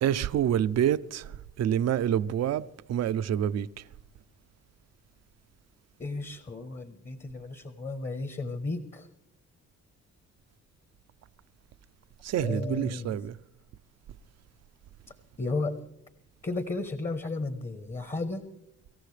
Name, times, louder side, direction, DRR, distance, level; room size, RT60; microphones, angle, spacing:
voice 1, 0.0-1.2 1.6-3.7 12.2-13.3, right 10 dB, 60° right, 0.6 m, -27 dB
voice 2, 6.0-9.1 12.3-13.2 15.4-15.8 16.4-18.5, left 3 dB, 25° left, 1.1 m, -34 dB
25.0 x 14.0 x 3.3 m
cardioid pair, 90°, 30 cm